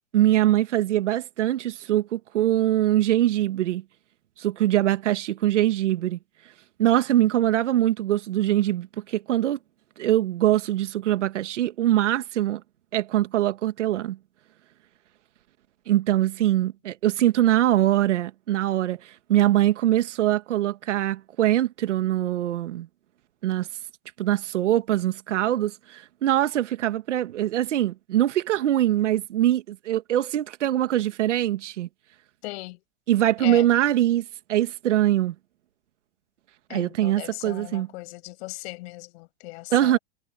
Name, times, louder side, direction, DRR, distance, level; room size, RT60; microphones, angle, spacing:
voice 1, 0.1-3.8 4.4-6.2 6.8-9.6 10.0-12.6 12.9-14.2 15.9-19.0 19.3-22.9 23.4-23.7 24.2-31.9 33.1-35.3 36.7-37.9 39.7-40.0, right 13 dB, 80° right, 2.2 m, -23 dB
voice 2, 32.4-32.8 33.4-33.7 36.7-40.0, left 22 dB, 60° left, 7.4 m, -38 dB
hypercardioid pair, 110°, 36 cm